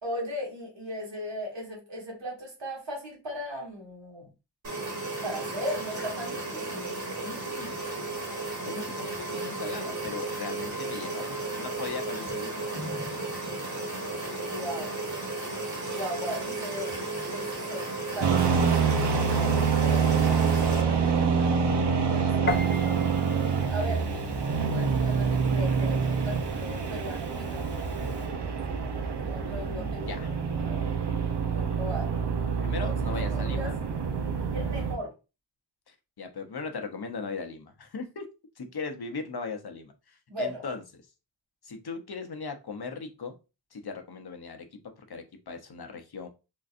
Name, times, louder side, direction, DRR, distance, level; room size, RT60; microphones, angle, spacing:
voice 1, 0.0-4.3 5.2-6.9 14.4-15.0 15.9-17.9 18.1-21.4 22.1-23.0 23.7-28.1 29.2-30.3 30.6-30.9 31.5-32.1 32.7-32.9 33.3-33.7 34.5-35.1 40.3-40.6, equal, 85° right, -3 dB, 1.5 m, -38 dB
sound 1, 4.6-20.8, right 2 dB, 40° right, 1.3 m, -34 dB
voice 2, 7.2-7.8 8.6-12.7 22.0-22.5 29.4-30.3 32.6-33.8 35.9-38.2 38.6-40.8 41.6-43.3 43.7-44.7 45.1-46.3, left 4 dB, 60° left, 5 dB, 0.7 m, -38 dB
sound 2, 18.2-35.0, right 6 dB, 70° right, 0.7 m, -26 dB
Piano, 22.5-28.3, left 3 dB, 25° left, 0.5 m, -39 dB
3.8 x 2.5 x 2.4 m, 0.29 s
wide cardioid pair, 60°, 42 cm